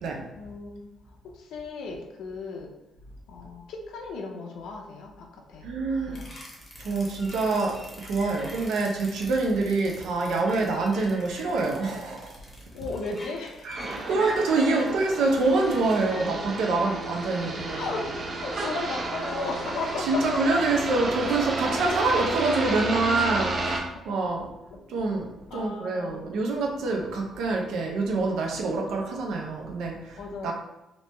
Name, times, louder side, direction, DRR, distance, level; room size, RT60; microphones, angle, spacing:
voice 1, 0.4-0.9 1.2-2.7 3.3-5.7 6.1-6.4 12.7-14.1 14.7-15.1 17.7-20.4 23.9-24.1 24.7-24.8 25.5-26.3 30.2-30.5, left 3 dB, 90° left, 1 dB, 0.5 m, -36 dB
voice 2, 5.6-6.2 6.8-12.3 13.6-17.9 20.1-24.5 24.9-30.5, right 3 dB, 80° right, 1 dB, 0.6 m, -26 dB
sound 1, 6.1-16.2, equal, 20° left, 0.8 m, -44 dB
sound 2, 13.7-23.8, right 2 dB, 30° right, 0.5 m, -32 dB
3.0 x 2.8 x 3.3 m, 0.97 s
cardioid pair, 165°, 0 cm